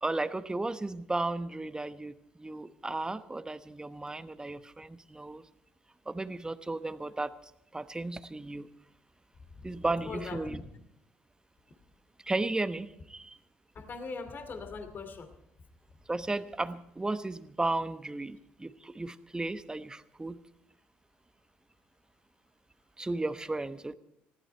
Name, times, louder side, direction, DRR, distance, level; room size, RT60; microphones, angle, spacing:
voice 1, 0.0-5.4 6.1-7.3 7.7-8.7 9.6-10.6 12.2-13.4 16.1-20.4 23.0-23.9, right 2 dB, 15° right, 12 dB, 1.0 m, -34 dB
voice 2, 10.0-10.7 13.7-15.3, left 4 dB, 45° left, 8 dB, 2.5 m, -40 dB
20.0 x 15.0 x 4.4 m, 0.76 s
hypercardioid pair, 60°, 5 cm